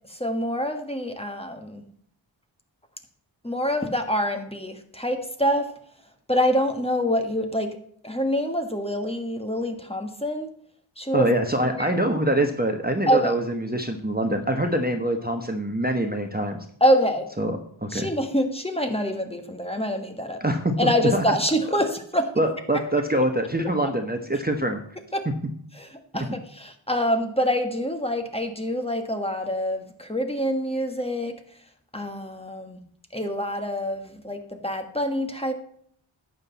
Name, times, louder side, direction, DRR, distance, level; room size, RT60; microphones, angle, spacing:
voice 1, 0.1-1.8 3.4-5.7 6.3-7.8 8.0-10.5 11.0-11.3 11.6-12.0 13.1-13.3 16.8-17.3 17.9-20.4 20.8-22.4 23.8-23.9 25.1-25.3 25.8-31.3 31.9-32.8 33.1-35.5, equal, 10° left, 5 dB, 1.5 m, -26 dB
voice 2, 11.1-16.6 17.4-18.1 20.4-21.4 22.4-24.8, right 1 dB, 20° right, 4 dB, 1.0 m, -24 dB
11.5 x 7.9 x 4.1 m, 0.62 s
wide cardioid pair, 50°, 47 cm